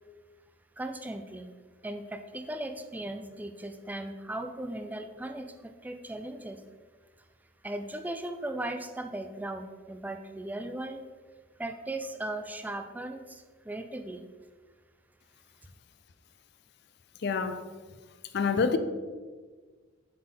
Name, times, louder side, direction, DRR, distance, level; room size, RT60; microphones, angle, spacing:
voice 1, 0.8-1.5 1.8-6.6 7.6-11.0 11.6-14.3, right 1 dB, 10° right, 0.3 m, -37 dB
voice 2, 17.2-17.6 18.3-18.8, left 5 dB, 55° left, 0.5 m, -26 dB
7.4 x 4.1 x 4.4 m
head